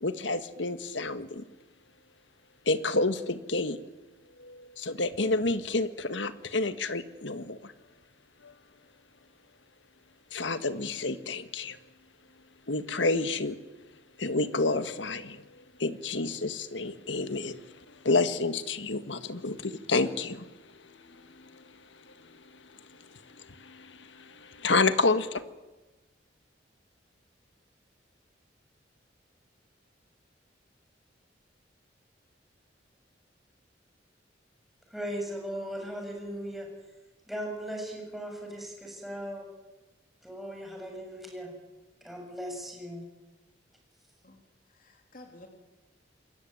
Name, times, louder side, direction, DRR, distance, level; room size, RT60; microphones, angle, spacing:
voice 1, 0.0-1.4 2.7-3.8 4.4-7.6 8.4-8.5 10.3-11.8 12.7-13.6 14.2-15.4 15.8-17.6 18.0-20.5 23.6-24.0 24.4-25.4, left 3 dB, 85° left, 11 dB, 1.7 m, -29 dB
voice 2, 34.9-36.7 37.3-39.5 40.2-41.5 42.0-43.1, equal, ahead, 1 dB, 7.3 m, -38 dB
voice 3, 44.2-45.5, left 2 dB, 45° left, 3 dB, 3.2 m, -53 dB
27.0 x 22.0 x 9.2 m, 1.1 s
head